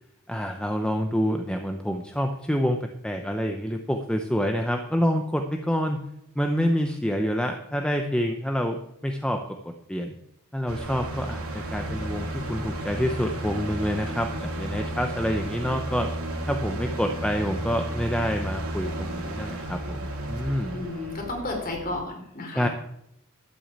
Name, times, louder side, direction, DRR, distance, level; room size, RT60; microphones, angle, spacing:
voice 1, 0.3-6.0 6.4-9.6 9.9-10.1 10.5-16.1 16.5-20.7 22.6-22.7, equal, 5° left, 5 dB, 0.7 m, -27 dB
sound 1, 10.7-22.0, right 1 dB, 80° right, 3.0 m, -33 dB
voice 2, 20.7-22.7, left 2 dB, 45° left, 1 dB, 3.9 m, -32 dB
12.5 x 6.3 x 8.7 m, 0.78 s
head